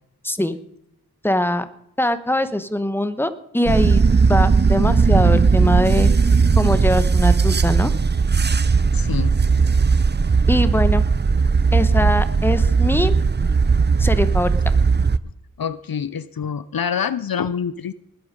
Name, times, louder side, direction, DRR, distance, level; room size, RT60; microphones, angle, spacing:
voice 1, 0.2-0.6 1.2-1.6 2.0-4.0 4.3-6.1 6.6-7.9 10.5-11.0 11.7-13.1 14.0-14.5, left 1 dB, 5° left, 11 dB, 1.1 m, -22 dB
sound 1, 3.7-15.2, right 5 dB, 30° right, 0.5 m, -17 dB
voice 2, 8.9-9.3 15.6-17.9, left 7 dB, 70° left, 16 dB, 0.6 m, -26 dB
20.0 x 8.9 x 5.2 m, 0.74 s
wide cardioid pair, 50°, 37 cm